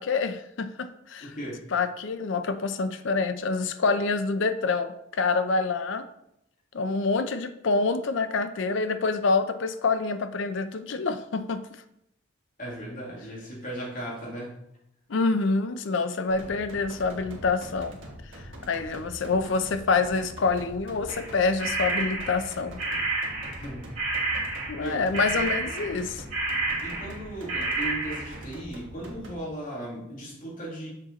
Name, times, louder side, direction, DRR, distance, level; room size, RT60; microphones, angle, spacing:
voice 1, 0.0-1.3 1.7-6.0 6.7-11.6 15.1-18.0 18.3-22.8 24.7-26.2, left 4 dB, 65° left, 10 dB, 0.5 m, -27 dB
voice 2, 1.2-1.6 12.6-14.5 23.6-23.9 24.8-25.4 26.8-30.9, right 1 dB, 40° left, -5 dB, 2.4 m, -37 dB
sound 1, 16.3-29.3, equal, 65° right, 1.5 m, -43 dB
sound 2, 21.1-23.7 24.0-27.2 27.5-28.4, right 3 dB, 35° right, 2.7 m, -30 dB
7.1 x 4.3 x 4.0 m, 0.80 s
head